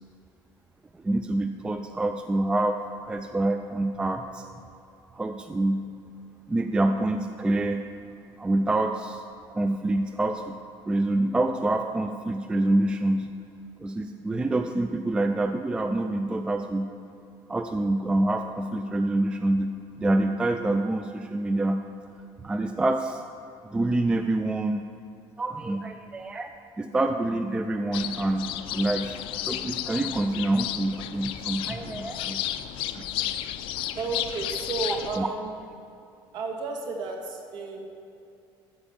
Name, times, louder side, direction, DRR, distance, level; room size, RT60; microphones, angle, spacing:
voice 1, 0.9-4.4 5.1-5.9 6.5-7.8 8.4-9.2 9.5-10.6 10.9-13.3 13.8-16.9 17.5-21.8 22.4-23.2 23.6-24.8 25.4-29.2 29.5-32.7 33.0-33.1 35.2-35.3, right 2 dB, 10° right, 6 dB, 0.3 m, -26 dB
sound 1, 27.9-35.2, left 12 dB, 65° left, 0.5 m, -33 dB
voice 2, 33.9-35.5 36.3-37.9, right 4 dB, 50° right, 2 dB, 1.6 m, -32 dB
13.0 x 5.1 x 7.1 m, 2.7 s
cardioid pair, 160°, 10 cm